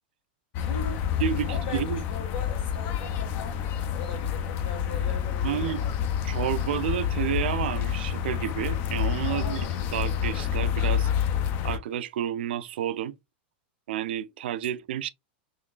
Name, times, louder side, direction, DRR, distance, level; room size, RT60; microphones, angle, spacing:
sound 1, 0.5-11.8, left 9 dB, 35° left, 0.4 m, -28 dB
voice 1, 0.6-1.0 1.5-6.0 9.3-9.8, left 4 dB, 65° left, 1.5 m, -40 dB
voice 2, 1.2-2.0 5.4-5.8 6.2-11.1 11.6-13.1 13.9-15.1, right 10 dB, 80° right, 0.3 m, -30 dB
3.8 x 3.1 x 2.3 m
supercardioid pair, 160°, 6 cm